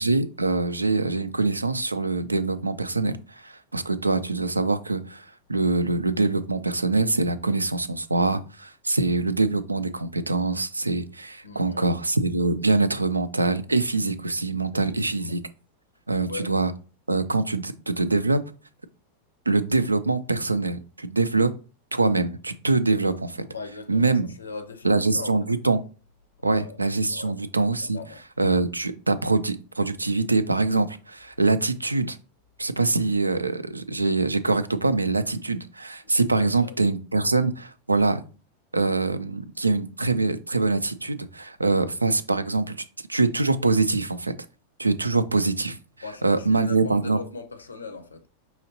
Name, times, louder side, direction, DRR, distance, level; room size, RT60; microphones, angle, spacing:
voice 1, 0.0-15.4 16.1-16.7 17.1-18.4 19.5-21.5 21.9-23.5 23.9-24.3 24.8-25.8 26.4-28.0 28.4-32.2 32.6-38.2 38.7-42.8 43.1-44.3 44.8-45.8 46.2-47.2, right 3 dB, 80° right, 0.3 m, -24 dB
voice 2, 11.4-11.9 15.0-15.3 16.2-16.5 23.4-25.5 26.4-26.8 27.1-27.4 27.8-28.2 36.4-36.7 45.1-45.2 46.0-48.3, left 4 dB, 75° left, 0.6 m, -39 dB
5.5 x 2.9 x 2.7 m
figure-of-eight pair, 90°, 0 cm